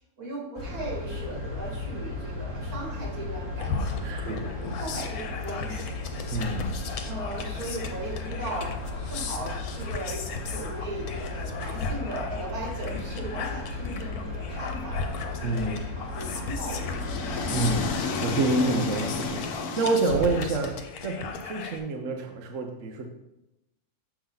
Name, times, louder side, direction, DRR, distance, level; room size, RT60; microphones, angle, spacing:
voice 1, 0.2-6.0 7.0-17.1, right 1 dB, 85° right, -3 dB, 2.5 m, -38 dB
sound 1, 0.6-17.6, left 2 dB, 20° right, 1.6 m, -35 dB
sound 2, 3.6-21.8, left 4 dB, 85° left, 1.2 m, -37 dB
voice 2, 4.0-4.5 6.3-6.8 15.4-15.8 17.5-23.1, right 2 dB, 65° right, 3 dB, 1.0 m, -28 dB
sound 3, 16.2-20.6, left 3 dB, 65° left, 1.1 m, -32 dB
7.0 x 5.5 x 3.8 m, 0.92 s
omnidirectional pair, 1.5 m